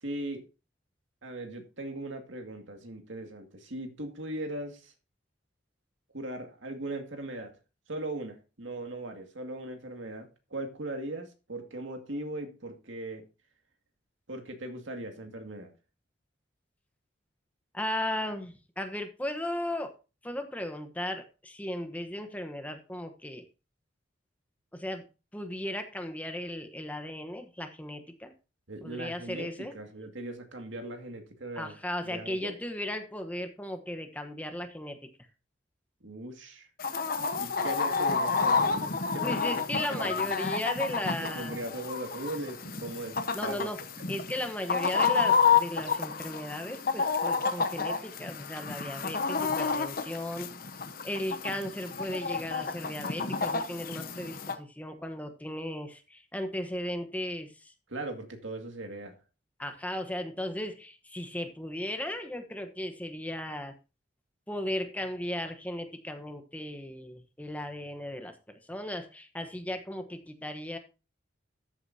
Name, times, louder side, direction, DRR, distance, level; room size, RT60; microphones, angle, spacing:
voice 1, 0.0-0.4 1.2-4.9 6.1-7.5 7.9-13.3 14.3-15.7 28.7-31.8 32.0-32.5 36.0-36.7 37.4-40.4 41.2-43.7 57.9-59.1, right 2 dB, 75° right, 2.1 m, -39 dB
voice 2, 17.7-19.9 20.2-23.4 24.7-25.1 25.3-28.3 28.8-29.7 31.5-35.0 39.2-41.6 43.3-43.8 44.1-50.5 51.0-57.7 59.6-63.7 64.5-68.4 68.7-70.8, left 1 dB, 10° left, 1.0 m, -36 dB
Chicken rooster, 36.8-54.5, left 5 dB, 50° left, 1.0 m, -30 dB
13.5 x 8.1 x 2.7 m
head